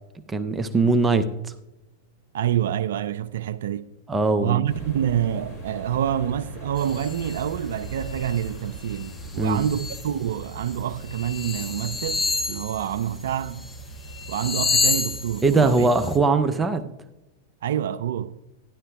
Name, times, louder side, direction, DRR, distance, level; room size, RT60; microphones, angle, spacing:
voice 1, 0.3-1.5 4.1-4.6 9.4-9.6 15.4-16.9, right 3 dB, 15° right, 0.5 m, -21 dB
voice 2, 2.3-3.8 4.4-13.7 14.3-15.9 16.5-16.7 17.6-18.3, right 10 dB, 70° right, 0.3 m, -27 dB
sound 1, 4.6-12.4, right 1 dB, 50° left, 3.4 m, -41 dB
sound 2, 6.1-16.2, right 3 dB, 70° left, 2.3 m, -43 dB
sound 3, 6.8-7.5 7.9-8.5 8.8-10.1 10.6-10.7 11.1-13.8 14.1-16.2, left 4 dB, 15° left, 0.9 m, -29 dB
12.5 x 11.0 x 2.3 m
hypercardioid pair, 100°, 0 cm